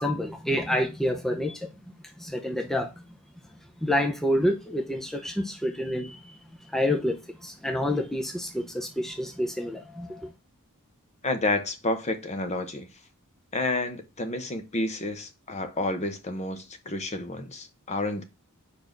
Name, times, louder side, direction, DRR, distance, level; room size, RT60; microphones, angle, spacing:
voice 1, 0.0-1.7 2.2-2.9 3.8-6.3 6.7-10.3, left 1 dB, ahead, 0.7 m, -28 dB
voice 2, 11.2-12.9 13.5-18.2, left 2 dB, 30° left, 0.9 m, -30 dB
5.2 x 4.4 x 5.9 m
head